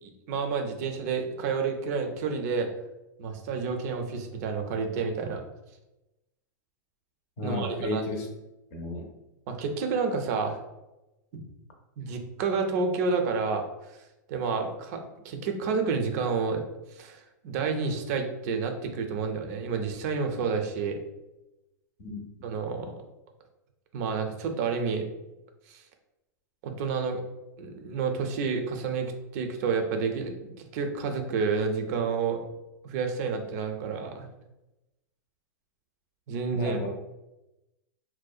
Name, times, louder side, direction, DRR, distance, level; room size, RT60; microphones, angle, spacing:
voice 1, 0.0-2.7 3.2-5.4 7.4-8.0 9.5-10.6 12.0-13.6 14.3-16.6 16.9-21.0 22.4-22.9 23.9-25.0 25.7-25.8 26.6-27.2 27.6-32.4 32.8-34.3 36.3-36.8, right 5 dB, 55° right, 5 dB, 0.4 m, -29 dB
voice 2, 7.4-8.3 8.7-9.1 22.0-22.2 36.5-36.9, left 2 dB, 50° left, 2 dB, 0.6 m, -33 dB
2.6 x 2.1 x 2.3 m, 0.97 s
hypercardioid pair, 135°, 11 cm